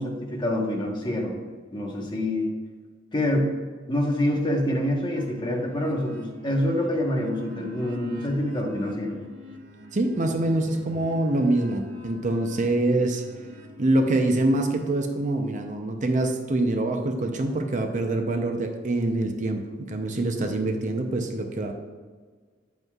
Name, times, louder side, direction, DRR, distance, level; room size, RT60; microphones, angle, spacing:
voice 1, 0.0-1.3 1.7-2.5 3.1-3.5 3.9-9.2, left 1 dB, 25° left, 0 dB, 1.2 m, -26 dB
sound 1, 5.1-14.9, left 1 dB, 80° right, 1.0 m, -46 dB
voice 2, 9.9-13.2 13.8-21.7, right 2 dB, 40° right, 4 dB, 0.6 m, -25 dB
9.1 x 7.9 x 2.4 m, 1.5 s
head